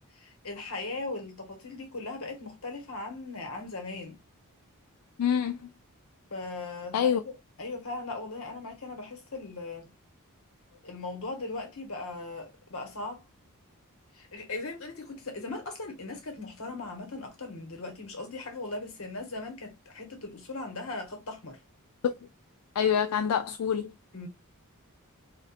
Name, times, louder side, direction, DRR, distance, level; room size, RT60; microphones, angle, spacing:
voice 1, 0.1-4.2 6.3-7.3 7.6-9.9 10.8-13.2 14.1-21.6 24.1-24.3, left 3 dB, 65° left, 1.3 m, -38 dB
voice 2, 5.2-5.6 6.9-7.2 22.8-23.9, left 8 dB, 85° left, 0.4 m, -26 dB
4.1 x 2.5 x 2.4 m
head